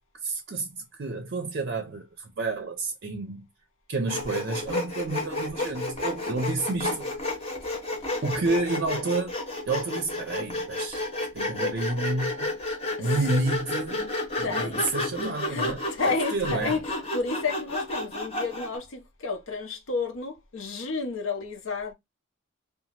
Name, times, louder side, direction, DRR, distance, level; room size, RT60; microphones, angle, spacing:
voice 1, 0.2-3.5 3.9-7.3 8.2-9.3 9.6-11.1 11.3-12.5 13.0-14.1 14.4-15.8 16.0-16.8, right 3 dB, 50° right, 0.5 m, -30 dB
Sawing, 4.1-18.8, left 2 dB, 30° left, 0.9 m, -31 dB
voice 2, 14.4-14.9 15.5-21.9, left 4 dB, 80° left, 0.8 m, -31 dB
2.8 x 2.3 x 2.8 m
head